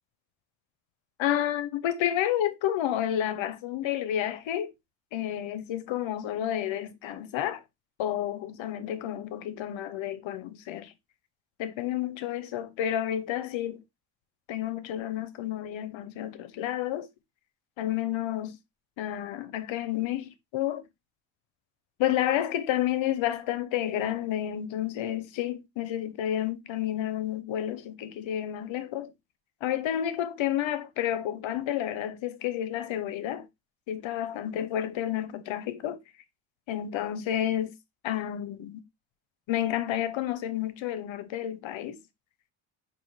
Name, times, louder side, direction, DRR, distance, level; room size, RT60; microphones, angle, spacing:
voice 1, 1.2-4.7 5.1-7.6 8.0-10.9 11.6-13.8 14.5-17.1 17.8-18.6 19.0-20.8 22.0-29.1 29.6-33.5 33.9-36.0 36.7-37.7 38.0-38.8 39.5-42.0, left 11 dB, 70° left, 0.8 m, -30 dB
5.4 x 2.8 x 3.1 m
cardioid pair, 100°, 47 cm